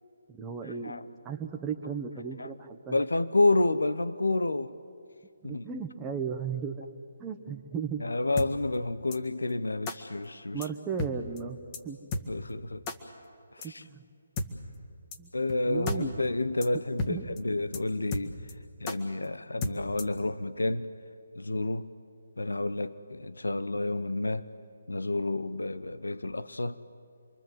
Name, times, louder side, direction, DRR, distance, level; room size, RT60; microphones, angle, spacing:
voice 1, 0.3-3.0 5.4-6.9 7.2-8.0 8.4-8.5 10.5-12.0 13.6-14.0 15.2-15.3 15.6-16.2 17.0-17.2, right 6 dB, 15° right, 1.2 m, -36 dB
voice 2, 2.9-4.7 5.4-5.6 8.0-10.7 12.3-12.8 13.5-13.8 15.3-18.5 18.8-20.9 21.4-21.9 22.4-24.5 24.9-26.8, left 2 dB, 90° left, 0.9 m, -29 dB
sound 1, 8.4-8.5 9.1-9.2 9.9-10.0 10.6-10.7 11.0-11.1 11.4-11.5 11.7-11.8 12.1-12.2 12.9-13.0 13.6-13.7 14.4-14.5 15.1-15.2 15.5-15.6 15.9-16.3 16.6-16.7 17.0-17.1 17.4-17.5 17.7-17.8 18.1-18.5 18.9-19.0 19.6-20.2, left 2 dB, 25° left, 1.8 m, -33 dB
28.0 x 22.5 x 8.0 m
figure-of-eight pair, 155°, 0 cm